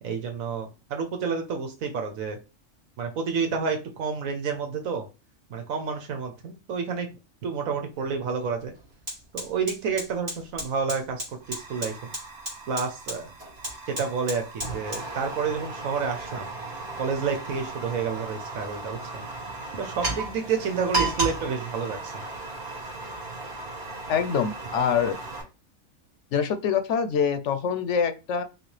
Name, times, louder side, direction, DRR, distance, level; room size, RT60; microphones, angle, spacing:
voice 1, 0.0-2.4 3.0-5.1 5.5-7.1 7.4-8.7 9.3-12.1 12.7-13.3 13.9-16.5 17.0-19.2 19.7-22.1, right 5 dB, 85° right, 5 dB, 1.3 m, -29 dB
Fire, 7.9-8.1 8.4-25.4, right 2 dB, 50° right, 2.6 m, -35 dB
voice 2, 24.1-25.2 26.3-28.4, left 7 dB, 65° left, 10 dB, 0.9 m, -25 dB
6.0 x 2.4 x 3.2 m, 0.29 s
omnidirectional pair, 1.4 m